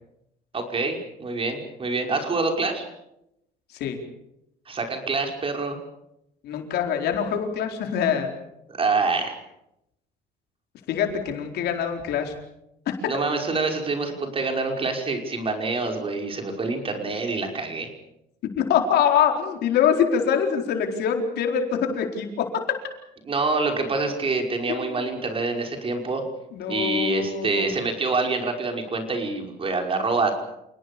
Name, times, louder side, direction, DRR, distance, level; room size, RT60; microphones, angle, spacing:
voice 1, 0.5-2.8 4.7-5.8 8.8-9.4 13.1-17.9 23.2-26.2 26.7-30.3, right 3 dB, 35° right, 4 dB, 5.5 m, -26 dB
voice 2, 6.4-8.3 10.9-12.3 12.9-13.0 18.6-22.4 24.7-25.1 26.5-27.7, left 8 dB, 75° left, 4 dB, 4.4 m, -24 dB
28.5 x 19.0 x 6.9 m, 0.83 s
cardioid pair, 110°, 17 cm